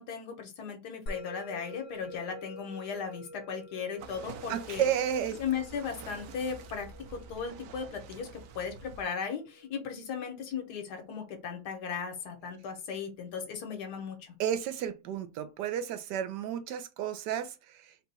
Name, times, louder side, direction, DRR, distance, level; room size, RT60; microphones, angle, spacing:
voice 1, 0.0-4.9 5.4-14.4, left 6 dB, 75° left, 1.5 m, -37 dB
Musical instrument, 1.1-11.7, left 1 dB, 60° left, 0.9 m, -48 dB
sound 1, 4.0-9.0, right 5 dB, 65° right, 0.8 m, -48 dB
voice 2, 4.5-5.4 14.4-17.5, right 9 dB, 90° right, 1.3 m, -32 dB
4.0 x 2.3 x 4.0 m
omnidirectional pair, 1.8 m